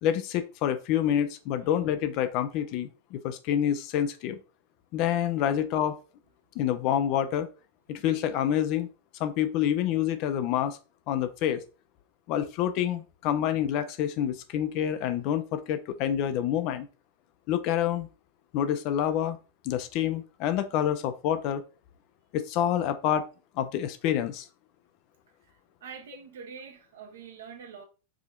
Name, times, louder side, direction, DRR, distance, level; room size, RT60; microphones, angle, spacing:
voice 1, 0.0-4.4 4.9-6.0 6.6-7.5 7.9-8.9 9.2-10.8 11.1-11.6 12.3-16.9 17.5-18.1 18.5-19.4 19.6-21.6 22.3-23.3 23.6-24.5, left 10 dB, 40° left, 0.4 m, -27 dB
voice 2, 25.4-27.8, right 6 dB, 60° right, 0.8 m, -45 dB
4.8 x 2.7 x 2.4 m
figure-of-eight pair, 90°, 0 cm